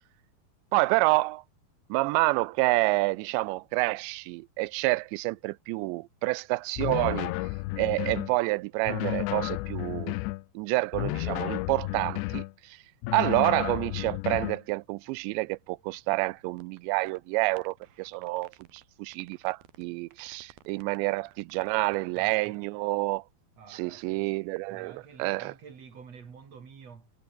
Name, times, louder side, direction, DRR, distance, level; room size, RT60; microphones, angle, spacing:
voice 1, 0.7-1.4 1.9-7.3 7.8-10.2 10.6-12.8 13.1-18.5 19.0-23.2 23.7-25.5, right 22 dB, 80° right, 2.7 m, -28 dB
sound 1, 6.8-8.3 8.9-10.4 10.9-12.5 13.0-14.6, left 20 dB, 80° left, 2.9 m, -32 dB
sound 2, 16.6-16.8 17.1-17.2 17.6-18.8 19.1-19.8 20.1-22.6, right 13 dB, 65° right, 2.7 m, -55 dB
voice 2, 21.9-22.7 23.6-24.3 24.7-27.1, right 6 dB, 40° right, 3.5 m, -49 dB
omnidirectional pair, 5.3 m